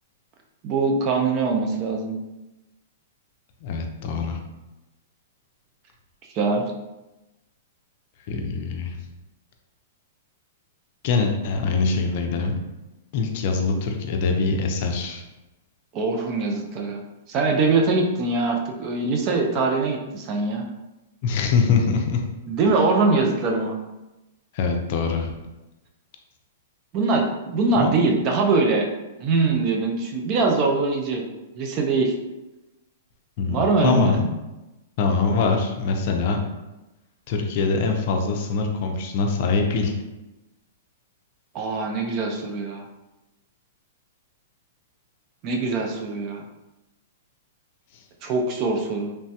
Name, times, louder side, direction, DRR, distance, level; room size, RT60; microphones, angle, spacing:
voice 1, 0.6-2.2 6.3-6.6 15.9-17.0 17.3-20.7 22.5-23.8 26.9-28.9 29.2-31.3 31.6-32.1 33.5-34.2 41.5-42.8 45.4-46.4 48.2-49.2, right 3 dB, 35° right, 1 dB, 0.4 m, -22 dB
voice 2, 3.6-4.4 8.3-9.0 11.0-12.5 13.1-15.2 21.2-22.2 24.5-25.3 27.8-28.0 33.4-34.4 35.0-36.4 37.3-39.9, left 4 dB, 50° left, 3 dB, 0.4 m, -23 dB
3.1 x 2.2 x 2.8 m, 1.0 s
hypercardioid pair, 150°, 0 cm